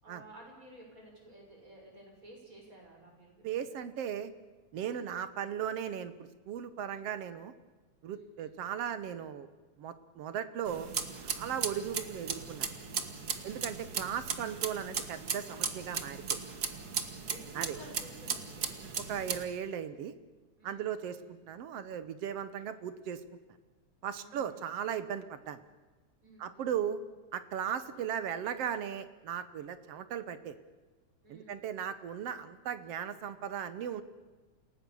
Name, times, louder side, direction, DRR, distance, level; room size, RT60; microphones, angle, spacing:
voice 1, 0.0-3.4 8.1-8.6 17.0-18.7 20.6-21.3 24.2-24.6 26.2-26.7 31.2-31.6, right 1 dB, 25° right, 0 dB, 6.7 m, -54 dB
voice 2, 3.4-4.3 4.7-6.1 6.5-7.5 8.0-9.5 9.8-10.9 11.2-12.7 13.4-16.4 17.6-17.8 19.1-20.1 20.6-23.2 24.0-25.6 26.4-27.0 27.3-30.6 31.3-34.0, right 9 dB, 65° right, 12 dB, 1.8 m, -37 dB
sound 1, 10.7-19.4, right 6 dB, 40° right, 1.6 m, -37 dB
28.5 x 18.0 x 7.0 m, 1.3 s
omnidirectional pair, 3.3 m